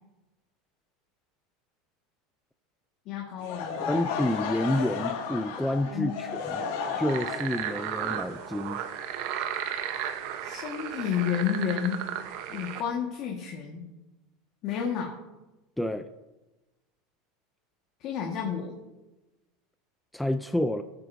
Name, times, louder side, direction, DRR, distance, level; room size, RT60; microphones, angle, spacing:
voice 1, 3.0-4.0 5.9-6.1 10.4-12.0 12.5-13.9 14.6-15.1 18.0-18.7, left 8 dB, 45° left, -1 dB, 1.5 m, -31 dB
Laughter / Crowd, 3.4-9.3, left 5 dB, 80° left, 2.0 m, -34 dB
voice 2, 3.9-6.6 7.0-8.8 15.8-16.1 20.1-20.8, left 1 dB, 5° left, 9 dB, 0.4 m, -29 dB
sound 1, 7.1-12.8, right 9 dB, 60° right, 0.9 m, -34 dB
22.0 x 7.9 x 2.6 m, 1.1 s
supercardioid pair, 150°, 0 cm